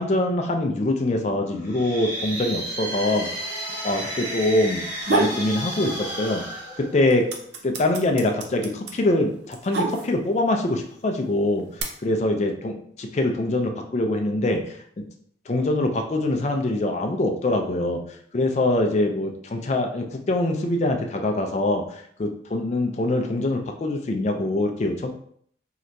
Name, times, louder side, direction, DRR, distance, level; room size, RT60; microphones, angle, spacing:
voice 1, 0.0-3.3 3.8-6.4 6.8-7.3 7.6-11.7 12.0-15.0 15.5-18.0 18.3-25.1, left 1 dB, 40° left, 4 dB, 0.4 m, -24 dB
sound 1, 1.6-7.5, right 1 dB, 25° right, 0.9 m, -33 dB
sound 2, 5.0-5.4 5.8-6.6 6.8-10.4 11.2-11.8, right 3 dB, 70° right, 0.5 m, -27 dB
3.3 x 2.8 x 2.6 m, 0.63 s
head